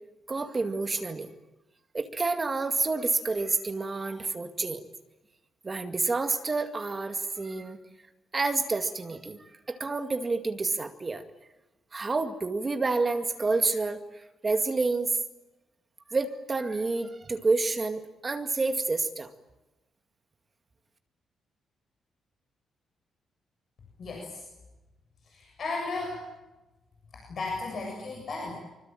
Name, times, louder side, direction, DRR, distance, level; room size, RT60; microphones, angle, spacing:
voice 1, 0.3-1.3 1.9-4.8 5.6-7.8 8.3-11.2 11.9-14.0 14.4-15.1 16.1-19.3, right 3 dB, 20° right, 7 dB, 2.1 m, -29 dB
voice 2, 24.0-24.4 25.2-26.2 27.1-28.5, left 3 dB, 45° left, 0 dB, 7.6 m, -35 dB
25.5 x 25.0 x 9.1 m, 1.0 s
cardioid pair, 160°, 0 cm